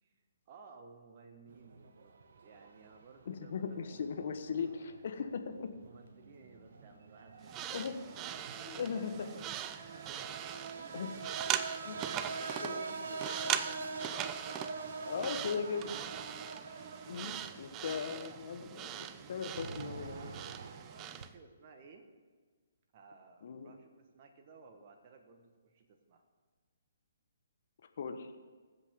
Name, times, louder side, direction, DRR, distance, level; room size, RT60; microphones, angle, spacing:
voice 1, 0.5-2.1 2.4-4.6 5.8-7.8 9.1-11.4 11.8-16.6 17.7-18.4 18.7-20.4 20.9-22.1 22.9-26.2, right 4 dB, 40° right, 4 dB, 1.4 m, -58 dB
sound 1, 1.5-21.3, right 4 dB, 60° right, 1.1 m, -45 dB
voice 2, 3.3-5.7 7.7-8.0 8.7-9.3 10.9-11.1 11.8-12.0 12.6-12.8 15.0-15.9 17.0-20.4 23.4-23.7 28.0-28.3, left 6 dB, 55° left, 7 dB, 1.2 m, -38 dB
sound 2, 7.4-21.3, right 11 dB, 25° right, 0.5 m, -41 dB
21.0 x 8.0 x 3.7 m, 1.5 s
figure-of-eight pair, 135°, 0 cm